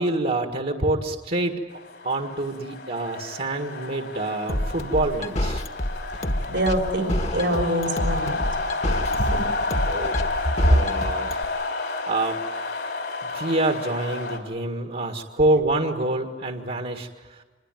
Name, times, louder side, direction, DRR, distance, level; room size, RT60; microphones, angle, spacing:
voice 1, 0.0-1.6 2.0-5.6 9.9-11.4 12.1-12.4 13.3-17.4, right 2 dB, 55° right, 4 dB, 1.8 m, -26 dB
sound 1, 1.7-14.4, left 3 dB, 75° left, 4.3 m, -30 dB
sound 2, 4.5-11.4, left 1 dB, 40° left, 1.5 m, -27 dB
voice 2, 6.5-8.4 9.1-9.4, right 1 dB, 75° right, 3 dB, 3.6 m, -25 dB
26.5 x 22.0 x 9.1 m, 1.2 s
head